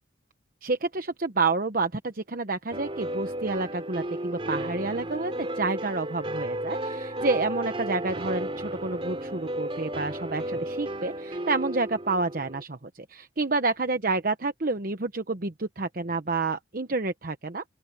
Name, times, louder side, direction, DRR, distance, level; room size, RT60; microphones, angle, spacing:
voice 1, 0.6-17.6, right 3 dB, 50° right, 1.0 m, -29 dB
sound 1, 2.7-12.6, right 1 dB, 30° right, 3.3 m, -33 dB
open air
head